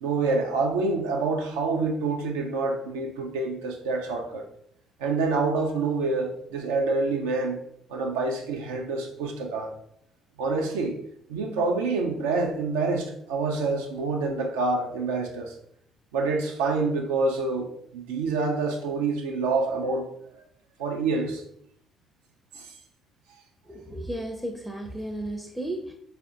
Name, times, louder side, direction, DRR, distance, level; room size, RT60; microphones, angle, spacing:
voice 1, 0.0-4.4 5.0-7.6 7.9-9.7 10.4-11.0 11.3-15.6 16.1-20.1 20.8-21.4 22.5-22.8, right 3 dB, 75° right, 0.3 m, -27 dB
voice 2, 23.7-25.9, right 1 dB, ahead, 0.4 m, -34 dB
4.1 x 2.5 x 2.4 m
figure-of-eight pair, 45°, 0 cm